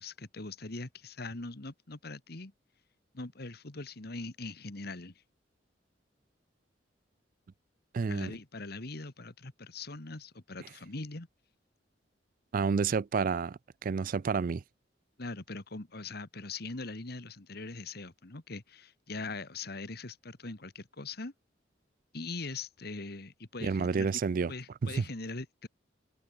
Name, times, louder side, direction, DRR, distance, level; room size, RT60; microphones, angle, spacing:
voice 1, 0.0-2.5 3.1-5.1 8.1-11.3 15.2-21.3 22.1-24.2 24.5-25.7, left 3 dB, 60° left, 1.8 m, -41 dB
voice 2, 7.9-8.3 12.5-14.6 23.6-24.5 24.8-25.0, right 5 dB, 50° right, 0.4 m, -30 dB
open air
head